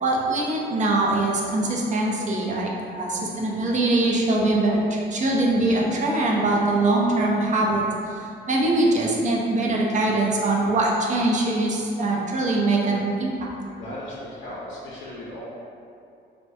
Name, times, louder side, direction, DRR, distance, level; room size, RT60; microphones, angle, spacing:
voice 1, 0.0-7.8 8.1-13.4, right 2 dB, 40° right, -2 dB, 0.4 m, -22 dB
voice 2, 13.7-15.4, left 1 dB, 75° left, -8 dB, 0.5 m, -36 dB
2.3 x 2.1 x 2.6 m, 2.6 s
cardioid pair, 90°, 20 cm